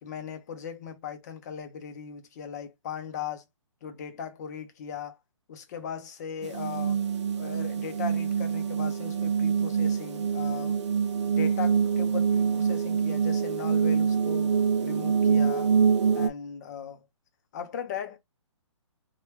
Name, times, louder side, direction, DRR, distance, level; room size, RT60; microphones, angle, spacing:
voice 1, 0.0-3.4 3.8-5.2 5.5-7.0 7.4-10.8 11.3-15.7 16.1-17.0 17.5-18.2, left 7 dB, 35° left, 0.6 m, -38 dB
sound 1, 6.4-16.3, right 6 dB, 60° right, 0.6 m, -25 dB
2.9 x 2.3 x 3.2 m
hypercardioid pair, 150°, 16 cm